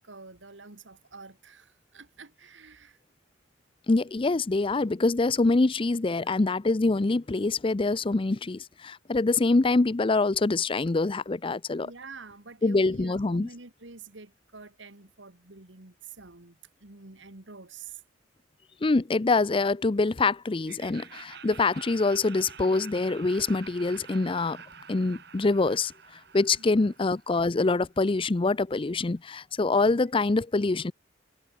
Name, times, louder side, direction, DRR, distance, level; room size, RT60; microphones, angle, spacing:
voice 1, 0.0-3.0 6.2-6.3 11.8-18.0 26.6-26.9, right 4 dB, 90° right, 2.5 m, -48 dB
voice 2, 3.9-11.9 12.6-13.5 18.8-24.6 24.9-25.9 26.3-30.9, left 3 dB, 30° left, 0.5 m, -25 dB
Laughter, 20.6-27.6, right 7 dB, 60° right, 2.6 m, -48 dB
head